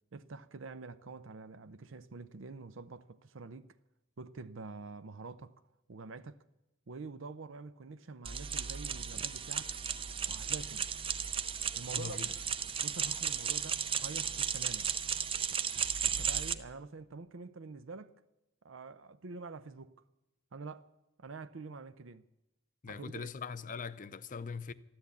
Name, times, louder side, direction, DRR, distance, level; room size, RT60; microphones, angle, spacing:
voice 1, 0.1-3.7 4.2-5.5 5.9-6.4 6.9-9.8 10.3-10.9 11.8-12.2 12.8-14.9 16.0-18.2 18.6-19.9 20.5-20.9 21.2-22.2 22.9-23.3, right 4 dB, 75° right, 0.6 m, -46 dB
sound 1, 8.3-16.6, right 7 dB, 25° right, 0.6 m, -35 dB
voice 2, 11.9-12.3 22.8-24.7, left 5 dB, 40° left, 0.6 m, -41 dB
13.0 x 13.0 x 8.3 m
head